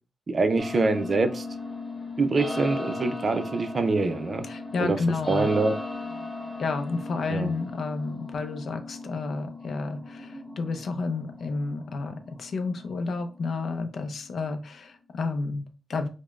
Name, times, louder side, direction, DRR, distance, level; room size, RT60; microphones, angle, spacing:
voice 1, 0.3-1.5 2.2-4.4 4.8-5.0 5.3-5.8 7.3-7.5, right 3 dB, 35° right, 8 dB, 0.4 m, -24 dB
sound 1, 0.6-14.5, left 2 dB, 20° left, 1.6 m, -38 dB
voice 2, 4.4-5.5 6.6-16.1, left 3 dB, 65° left, 7 dB, 0.5 m, -31 dB
5.0 x 2.1 x 2.3 m, 0.34 s
wide cardioid pair, 160°, 0 cm